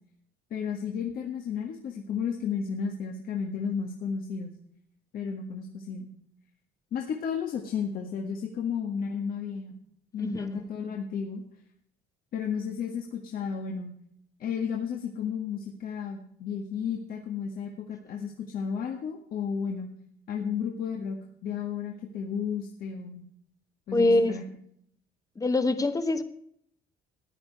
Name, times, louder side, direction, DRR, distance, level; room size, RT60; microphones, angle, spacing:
voice 1, 0.5-4.5 5.1-6.1 6.9-9.7 10.1-11.4 12.3-13.9 14.4-19.9 20.3-23.2 23.9-24.4, left 6 dB, 60° left, 1 dB, 1.8 m, -33 dB
voice 2, 10.2-10.6 23.9-24.4 25.4-26.2, left 2 dB, 20° left, 10 dB, 1.3 m, -24 dB
14.5 x 10.0 x 4.8 m, 0.68 s
cardioid pair, 110°, 17 cm